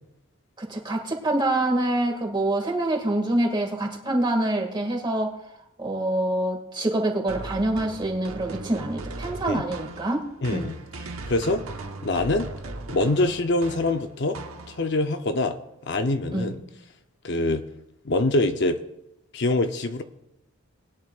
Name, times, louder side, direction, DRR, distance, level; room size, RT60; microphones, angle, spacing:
voice 1, 0.6-5.4 5.8-10.3 10.5-10.7 16.3-16.6, right 1 dB, 20° right, 2 dB, 2.0 m, -26 dB
sound 1, 7.3-15.1, right 2 dB, 85° right, 1.1 m, -38 dB
voice 2, 10.4-10.7 11.3-11.6 12.0-12.5 12.9-14.4 14.7-15.6 15.9-16.6 17.2-17.6 18.0-18.8 19.3-20.0, left 2 dB, 55° left, 7 dB, 0.7 m, -24 dB
20.5 x 10.5 x 2.4 m, 0.84 s
head